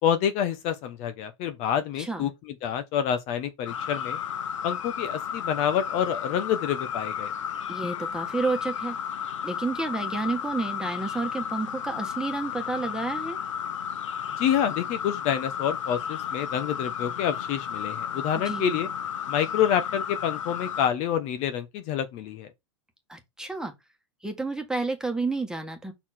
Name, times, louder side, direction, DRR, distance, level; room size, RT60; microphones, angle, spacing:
voice 1, 0.0-4.2 4.6-7.3 14.4-18.9 19.3-22.5, left 9 dB, 45° left, 1.0 m, -27 dB
voice 2, 2.0-2.3 7.7-9.0 9.4-13.4 18.3-18.8 23.1-23.7 24.2-25.9, right 3 dB, 5° right, 1.5 m, -30 dB
sound 1, 3.7-20.9, left 8 dB, 80° left, 0.9 m, -33 dB
5.8 x 4.4 x 4.3 m
hypercardioid pair, 115°, 16 cm